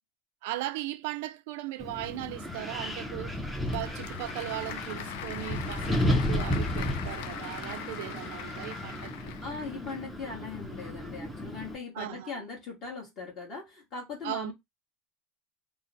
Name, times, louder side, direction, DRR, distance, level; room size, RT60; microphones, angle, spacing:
voice 1, 0.4-9.3 11.9-12.4 14.2-14.5, right 15 dB, 75° right, 0.4 m, -38 dB
Wind, 1.8-11.8, left 1 dB, 5° left, 0.6 m, -33 dB
Applause / Crowd, 3.3-10.0, left 10 dB, 80° left, 0.5 m, -42 dB
voice 2, 9.4-14.5, left 4 dB, 35° left, 1.4 m, -40 dB
3.1 x 2.1 x 3.9 m
supercardioid pair, 150°, 0 cm